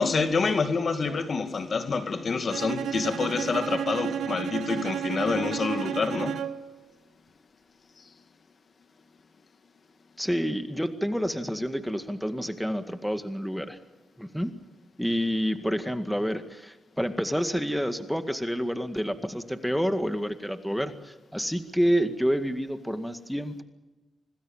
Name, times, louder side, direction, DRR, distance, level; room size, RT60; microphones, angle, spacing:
voice 1, 0.0-6.5, left 4 dB, 50° left, 2.4 m, -27 dB
Bowed string instrument, 2.5-6.8, right 9 dB, 85° right, 1.0 m, -32 dB
voice 2, 10.2-13.8 14.2-14.5 15.0-23.6, equal, ahead, 2.0 m, -28 dB
26.5 x 19.5 x 7.3 m
cardioid pair, 70°, 0 cm